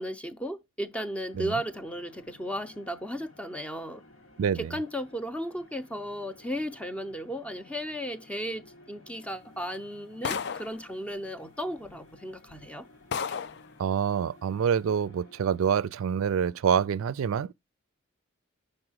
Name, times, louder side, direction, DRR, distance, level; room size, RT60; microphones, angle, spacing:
voice 1, 0.0-4.0 4.5-12.9, equal, 5° left, 0.5 m, -35 dB
sound 1, 0.9-16.2, left 2 dB, 85° left, 1.8 m, -56 dB
voice 2, 4.4-4.7 13.8-17.5, right 7 dB, 85° right, 0.4 m, -26 dB
sound 2, 10.2-10.8 11.8-11.9 12.5-12.6 13.1-13.6, left 6 dB, 55° left, 0.4 m, -32 dB
5.4 x 4.7 x 6.1 m
head